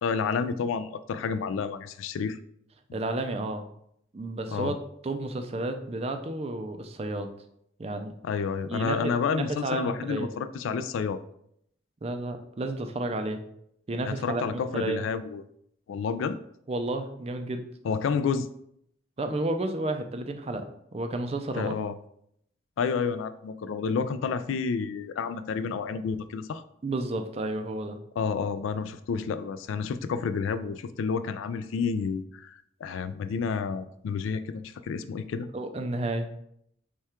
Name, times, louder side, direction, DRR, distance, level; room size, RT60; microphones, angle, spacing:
voice 1, 0.0-2.4 4.5-4.8 8.2-11.2 14.0-15.4 15.9-16.4 17.8-18.5 21.6-21.9 22.8-26.6 28.2-35.5, left 5 dB, 85° left, 12 dB, 0.3 m, -30 dB
voice 2, 2.9-3.6 4.1-4.7 5.0-7.3 7.8-8.1 8.7-10.3 12.0-13.4 13.9-14.4 14.7-15.0 16.7-17.6 19.2-21.7 26.8-28.0 35.5-36.3, right 2 dB, 30° right, 7 dB, 0.4 m, -31 dB
5.5 x 2.3 x 3.6 m, 0.73 s
head